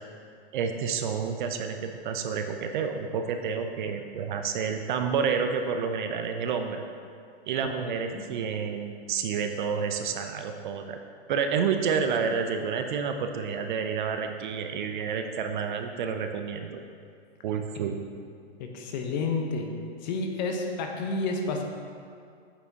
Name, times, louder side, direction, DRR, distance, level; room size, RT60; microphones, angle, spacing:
voice 1, 0.5-6.8 7.5-11.0 11.3-16.8 17.4-18.0, right 6 dB, 45° right, 6 dB, 0.6 m, -29 dB
voice 2, 7.8-8.2 18.6-19.7 20.0-21.6, left 3 dB, 40° left, 3 dB, 0.9 m, -30 dB
8.4 x 7.1 x 2.8 m, 2.3 s
hypercardioid pair, 145°, 33 cm